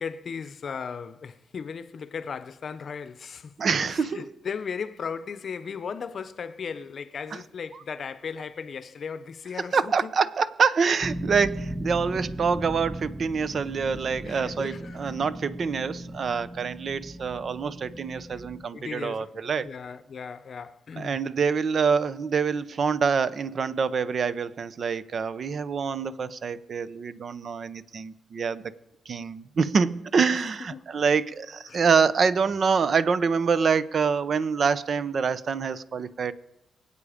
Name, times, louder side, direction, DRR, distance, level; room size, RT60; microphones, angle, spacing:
voice 1, 0.0-3.5 3.8-10.1 14.2-15.2 18.3-18.4 18.7-21.2 30.1-30.9 31.7-31.8, left 6 dB, 50° left, 0.7 m, -37 dB
voice 2, 3.6-4.2 9.7-19.7 21.0-28.6 29.1-36.3, right 5 dB, 50° right, 0.7 m, -26 dB
sound 1, 11.0-18.7, right 1 dB, 10° right, 0.6 m, -37 dB
24.0 x 8.4 x 5.0 m
cardioid pair, 125°, 0 cm